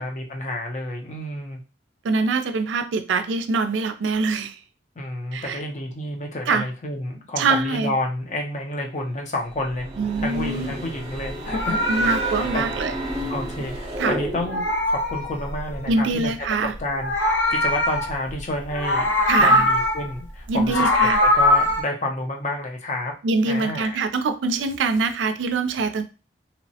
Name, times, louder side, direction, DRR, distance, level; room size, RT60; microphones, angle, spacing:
voice 1, 0.0-1.6 5.0-9.9 10.2-12.2 12.5-12.7 13.3-16.3 16.8-19.1 19.4-23.1 23.5-24.0, left 1 dB, 40° left, 2 dB, 0.6 m, -30 dB
voice 2, 2.0-4.6 5.3-5.6 6.5-6.7 7.4-7.9 10.0-10.7 11.9-12.9 14.0-14.1 15.9-16.7 19.3-19.7 20.5-21.2 23.2-26.0, right 4 dB, 85° right, 9 dB, 0.4 m, -23 dB
sound 1, 9.5-14.8, right 1 dB, 35° right, 0.5 m, -31 dB
Meow, 11.3-14.0 14.2-15.9 16.8-18.4 18.7-20.1 20.5-21.8, left 1 dB, 85° left, 0.7 m, -22 dB
2.9 x 2.0 x 2.7 m, 0.32 s
head